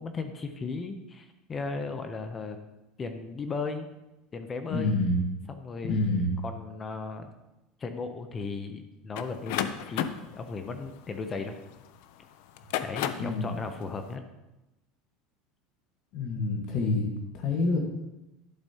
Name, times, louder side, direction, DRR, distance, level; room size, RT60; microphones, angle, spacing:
voice 1, 0.0-2.6 3.0-3.9 4.3-5.0 5.5-7.3 7.8-11.6 12.8-14.2, left 4 dB, 20° left, 7 dB, 0.6 m, -36 dB
voice 2, 4.7-5.2 5.9-6.3 13.2-13.5 16.1-17.1 17.3-17.8, left 2 dB, 50° left, 2 dB, 1.3 m, -27 dB
sound 1, 9.2-11.9 12.5-13.4, left 10 dB, 70° left, 0.5 m, -33 dB
11.5 x 7.1 x 2.8 m, 0.98 s
supercardioid pair, 155°, 0 cm